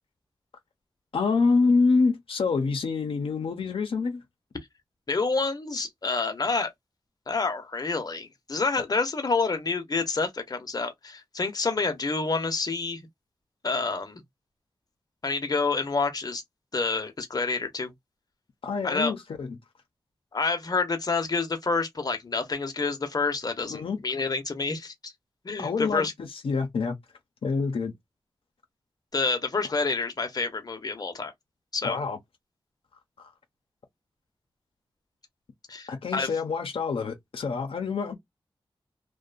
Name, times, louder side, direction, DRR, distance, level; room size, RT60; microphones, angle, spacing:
voice 1, 1.1-4.2 18.6-19.6 23.7-24.0 25.6-27.0 27.4-27.9 31.8-32.2 33.2-33.3 35.9-38.1, left 4 dB, 85° left, 0.6 m, -26 dB
voice 2, 5.1-6.7 7.3-13.0 13.6-14.2 15.2-16.4 16.7-17.9 18.8-19.1 20.3-25.1 25.4-26.1 29.1-31.3 31.7-32.0 35.7-36.3, left 4 dB, 45° left, 0.7 m, -28 dB
2.6 x 2.2 x 2.4 m
wide cardioid pair, 70°, 9 cm